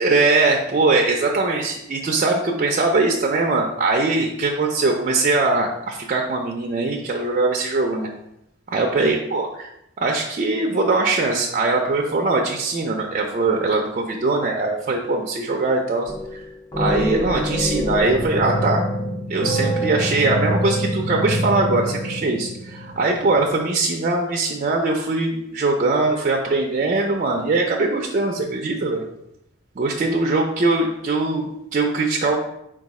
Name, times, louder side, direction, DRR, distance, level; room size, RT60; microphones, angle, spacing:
voice 1, 0.0-8.1 8.7-9.7 10.0-16.1 16.8-18.8 19.3-29.0 29.8-32.4, right 3 dB, 35° right, 0 dB, 0.4 m, -21 dB
sound 1, 16.1-16.4 16.7-23.5, equal, 20° left, 0.5 m, -25 dB
4.0 x 2.3 x 4.6 m, 0.80 s
head